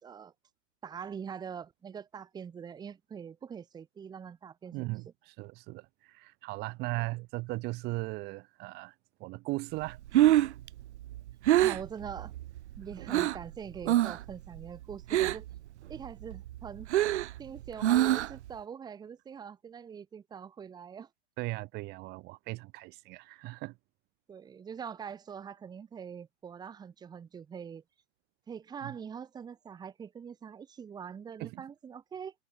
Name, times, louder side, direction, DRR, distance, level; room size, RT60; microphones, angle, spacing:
voice 1, 0.0-0.3 0.8-4.9 7.0-7.1 11.6-12.3 12.8-15.5 15.9-16.9 17.4-21.1 24.3-27.8 28.5-32.3, right 7 dB, 10° right, 2.2 m, -43 dB
voice 2, 4.7-8.9 9.2-10.3 21.4-23.7 28.8-28.9 31.4-31.6, right 22 dB, 25° right, 2.1 m, -38 dB
Breathing, 9.9-13.5 13.8-14.3 14.6-15.6 15.9-18.5, right 14 dB, 65° right, 0.5 m, -26 dB
hypercardioid pair, 150°, 37 cm